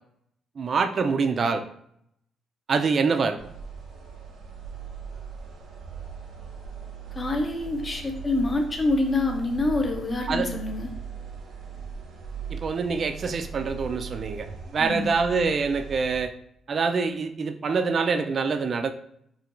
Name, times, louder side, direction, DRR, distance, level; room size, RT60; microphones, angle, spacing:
voice 1, 0.6-1.6 2.7-3.4 10.3-10.5 12.5-16.3 16.7-18.9, right 4 dB, 50° right, 8 dB, 0.3 m, -25 dB
sound 1, 3.4-16.2, right 6 dB, 80° right, 0.8 m, -39 dB
voice 2, 7.1-10.9 14.8-15.1, left 2 dB, 30° left, 3 dB, 0.5 m, -26 dB
4.3 x 2.3 x 2.5 m, 0.71 s
cardioid pair, 90°, 0 cm